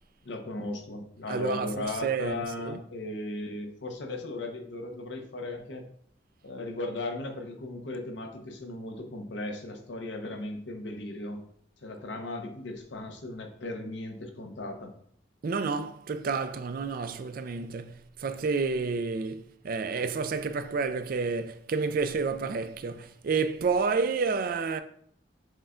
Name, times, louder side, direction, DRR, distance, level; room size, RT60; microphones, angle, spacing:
voice 1, 0.2-5.9 6.4-11.4 11.8-14.9, left 2 dB, 75° left, 0.8 m, -37 dB
voice 2, 1.3-2.8 15.4-24.8, right 4 dB, 50° right, 0.4 m, -30 dB
6.3 x 2.2 x 3.7 m
head